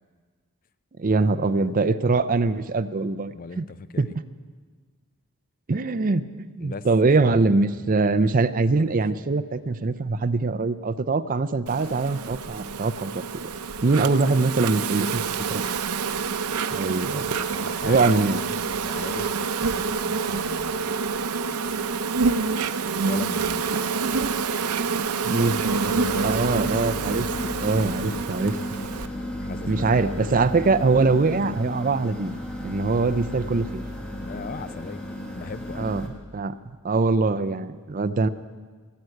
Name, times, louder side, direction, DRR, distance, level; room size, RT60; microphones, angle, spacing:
voice 1, 1.0-3.7 4.0-4.1 5.7-6.2 6.6-13.2 13.8-15.2 15.5-15.6 16.7-17.3 17.8-18.4 25.3-25.6 26.2-27.3 27.6-28.6 29.7-33.8 35.8-36.5 36.8-38.3, right 3 dB, 40° right, 13 dB, 0.5 m, -23 dB
voice 2, 3.3-4.2 6.6-6.9 7.2-7.9 8.8-8.9 17.2-18.2 18.7-21.0 22.9-23.9 26.0-26.3 27.0-27.3 27.7-28.3 29.4-30.4 34.2-35.0 35.3-35.9, left 4 dB, 40° left, 13 dB, 0.5 m, -39 dB
Insect, 11.7-29.1, right 5 dB, 90° right, 0.7 m, -27 dB
sound 1, 25.2-36.1, equal, 5° left, 1.7 m, -34 dB
17.5 x 7.9 x 9.7 m, 1.5 s
head